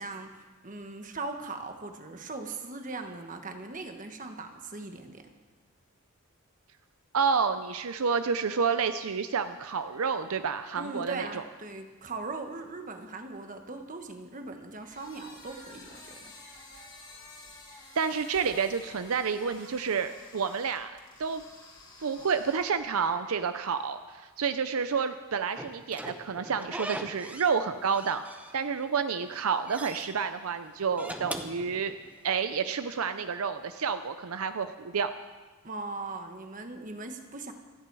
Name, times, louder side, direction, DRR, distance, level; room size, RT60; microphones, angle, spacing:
voice 1, 0.0-5.2 10.7-16.3 35.6-37.5, right 3 dB, 35° right, 5 dB, 1.3 m, -39 dB
voice 2, 7.1-11.4 17.9-20.9 21.2-21.4 22.0-28.2 28.5-31.9 32.2-35.1, right 6 dB, 75° right, 10 dB, 0.6 m, -29 dB
sound 1, 14.8-23.0, left 2 dB, 20° left, 2.4 m, -51 dB
Slam / Squeak, 25.6-27.6 27.9-28.9 29.2-30.1 30.8-32.3, right 1 dB, 5° right, 0.8 m, -40 dB
27.0 x 10.0 x 4.7 m, 1.3 s
head